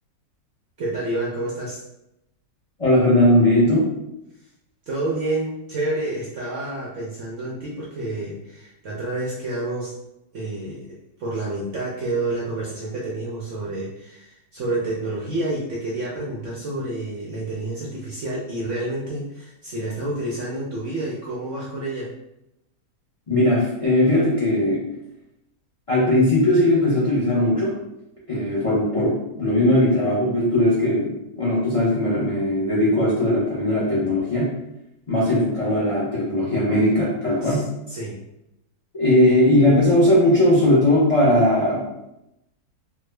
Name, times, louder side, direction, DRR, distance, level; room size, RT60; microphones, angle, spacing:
voice 1, 0.8-1.8 4.9-9.9 10.3-22.1 37.4-37.6 37.9-38.2, right 2 dB, 65° right, -5 dB, 0.7 m, -29 dB
voice 2, 2.8-3.9 23.3-24.8 25.9-27.8 28.3-34.5 35.1-37.7 38.9-42.1, left 1 dB, 65° left, -7 dB, 0.3 m, -19 dB
3.4 x 2.1 x 3.2 m, 0.86 s
omnidirectional pair, 1.9 m